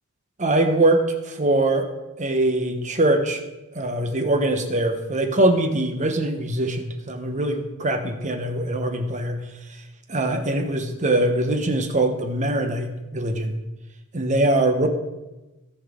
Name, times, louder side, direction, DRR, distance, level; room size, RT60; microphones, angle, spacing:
voice 1, 0.4-1.9 2.2-3.4 3.7-9.4 10.1-13.6 14.1-14.9, right 1 dB, 35° right, 5 dB, 1.2 m, -22 dB
17.0 x 6.0 x 3.8 m, 1.1 s
head